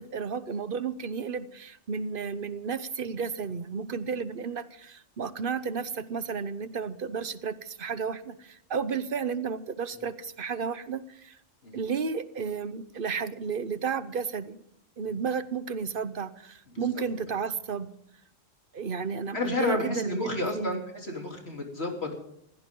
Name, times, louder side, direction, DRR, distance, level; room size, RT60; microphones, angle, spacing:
voice 1, 0.0-11.4 11.7-14.6 15.0-17.9 18.7-20.8, right 6 dB, 45° right, 14 dB, 1.0 m, -32 dB
voice 2, 19.3-22.1, left 2 dB, 55° left, 1 dB, 3.8 m, -31 dB
20.5 x 17.0 x 3.8 m, 0.72 s
omnidirectional pair, 1.3 m